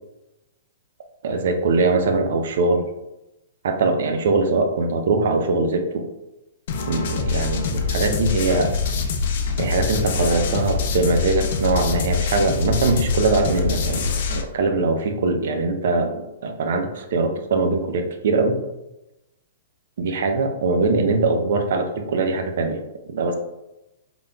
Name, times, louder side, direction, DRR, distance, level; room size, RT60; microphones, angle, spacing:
voice 1, 1.2-2.9 3.6-6.1 6.9-8.7 9.6-18.6 20.0-22.8 23.1-23.4, right 3 dB, 65° right, 5 dB, 0.5 m, -22 dB
sound 1, 6.7-14.4, left 5 dB, 60° left, 0.5 m, -24 dB
3.8 x 3.5 x 2.2 m, 0.94 s
hypercardioid pair, 120°, 0 cm